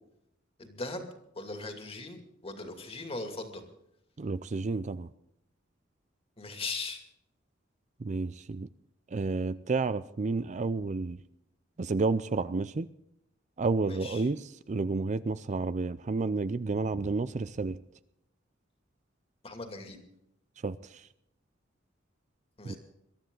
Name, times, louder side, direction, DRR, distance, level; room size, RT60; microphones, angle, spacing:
voice 1, 0.6-1.1 1.3-3.6 6.4-7.0 13.8-14.2 16.9-17.0 19.4-20.0 22.6-22.8, left 3 dB, 30° left, 5 dB, 2.5 m, -39 dB
voice 2, 4.2-5.1 8.0-8.7 9.1-11.2 11.8-12.9 13.6-17.8 20.6-21.1 22.6-22.7, right 3 dB, 40° right, 15 dB, 0.4 m, -31 dB
22.0 x 12.5 x 3.9 m, 0.77 s
head